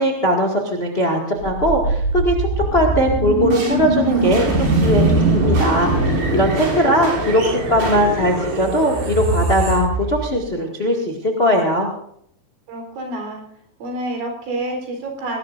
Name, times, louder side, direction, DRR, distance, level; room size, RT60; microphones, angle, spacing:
voice 1, 0.0-5.0 5.3-11.9, equal, 90° left, 0 dB, 0.5 m, -19 dB
sound 1, 1.4-10.5, right 2 dB, 60° right, 7.7 m, -21 dB
voice 2, 6.6-7.2 12.7-13.4 13.8-15.4, right 1 dB, 80° right, 2 dB, 6.2 m, -29 dB
21.5 x 18.5 x 2.6 m, 0.68 s
omnidirectional pair, 5.3 m